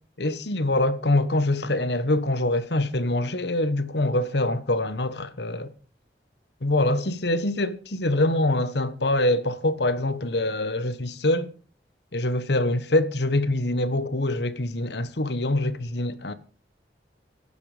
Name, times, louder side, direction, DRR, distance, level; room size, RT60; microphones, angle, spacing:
voice 1, 0.2-5.7 6.6-11.5 12.1-16.3, left 1 dB, 75° left, 1.3 m, -24 dB
16.0 x 12.0 x 5.1 m
head